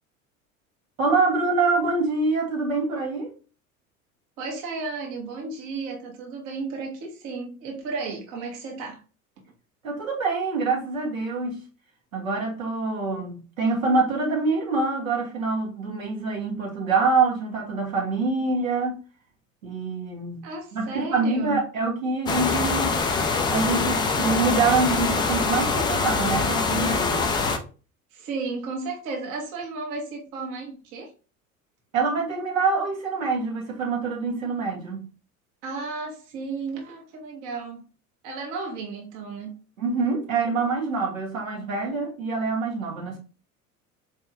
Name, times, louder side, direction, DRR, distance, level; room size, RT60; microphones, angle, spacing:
voice 1, 1.0-3.3 9.8-11.6 12.1-19.0 19.6-20.4 20.7-23.0 23.5-27.3 31.9-35.1 39.8-43.2, right 4 dB, 75° right, 1.4 m, -25 dB
voice 2, 4.4-9.0 20.4-21.6 28.1-31.1 35.6-37.8 38.2-39.5, right 4 dB, 45° right, 1.3 m, -33 dB
sound 1, 22.3-27.6, left 4 dB, 10° left, 0.3 m, -24 dB
4.4 x 3.4 x 2.6 m
figure-of-eight pair, 70°, 41 cm